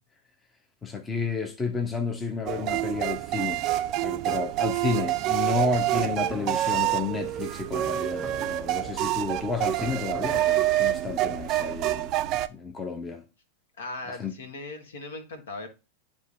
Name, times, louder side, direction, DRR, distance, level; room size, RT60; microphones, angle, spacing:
voice 1, 0.8-3.7 4.0-12.1 12.5-13.2 14.2-14.3, left 4 dB, 15° left, 0.9 m, -31 dB
sound 1, 2.5-12.5, right 14 dB, 35° right, 0.5 m, -27 dB
sound 2, 5.8-11.3, equal, 5° right, 1.0 m, -44 dB
voice 2, 13.8-15.7, left 2 dB, 60° left, 1.4 m, -38 dB
11.0 x 3.7 x 2.5 m
figure-of-eight pair, 90°, 0 cm